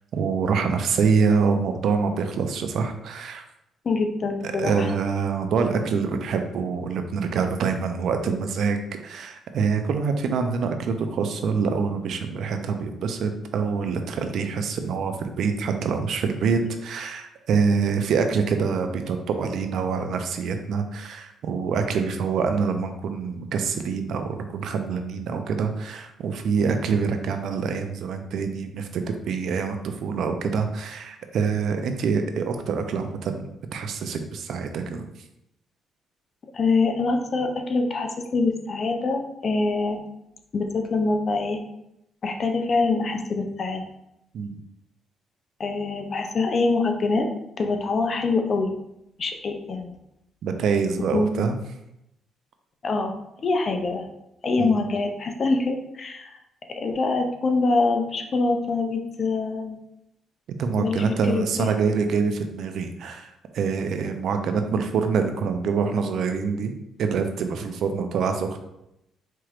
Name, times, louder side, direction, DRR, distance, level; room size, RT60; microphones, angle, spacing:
voice 1, 0.1-3.4 4.4-35.0 44.3-44.6 50.4-51.5 54.6-54.8 60.5-66.7 67.0-68.6, right 5 dB, 70° right, 6 dB, 0.4 m, -25 dB
voice 2, 3.8-4.9 36.5-40.0 40.5-41.6 42.2-43.8 45.6-47.3 47.6-48.7 49.2-50.0 51.1-51.3 52.8-53.1 53.4-54.1 54.4-56.3 56.7-59.8 60.8-61.8, left 3 dB, 45° left, 4 dB, 0.5 m, -24 dB
4.4 x 3.0 x 2.5 m, 0.83 s
cardioid pair, 90°, 0 cm